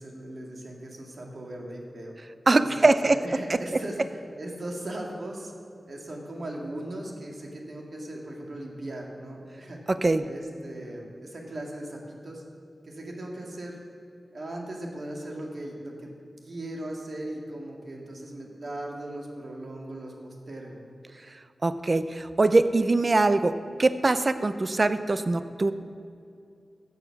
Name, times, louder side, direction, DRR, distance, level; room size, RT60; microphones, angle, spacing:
voice 1, 0.0-2.1 2.6-5.5 5.9-9.8 10.2-12.4 12.8-13.8 14.3-16.1 16.4-20.8, right 1 dB, 60° right, -1 dB, 2.0 m, -38 dB
voice 2, 2.5-3.2 3.5-3.6 9.9-10.3 21.6-25.7, right 2 dB, 40° right, 12 dB, 0.5 m, -22 dB
14.5 x 7.1 x 5.9 m, 2.5 s
wide cardioid pair, 90°, 0 cm